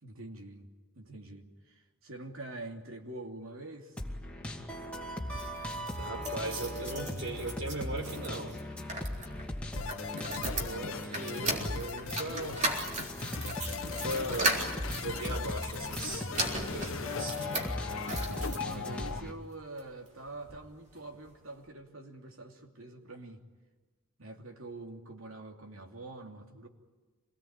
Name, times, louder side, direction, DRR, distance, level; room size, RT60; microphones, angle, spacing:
voice 1, 0.0-0.7 0.9-4.0 9.3-10.0 17.9-23.4 24.2-26.7, right 2 dB, 80° right, 2 dB, 3.0 m, -46 dB
sound 1, 4.0-19.3, left 1 dB, 5° left, 2.4 m, -39 dB
sound 2, 5.2-19.2 19.8-20.6 21.0-21.1 21.3-21.4, right 2 dB, 35° right, 3.8 m, -38 dB
voice 2, 6.0-8.6 10.2-12.6 13.8-14.6 14.9-16.3 16.7-17.4, right 1 dB, 60° right, 3 dB, 4.5 m, -38 dB
sound 3, 9.8-19.2, left 6 dB, 75° left, 0.8 m, -40 dB
26.0 x 19.0 x 9.0 m, 1.3 s
head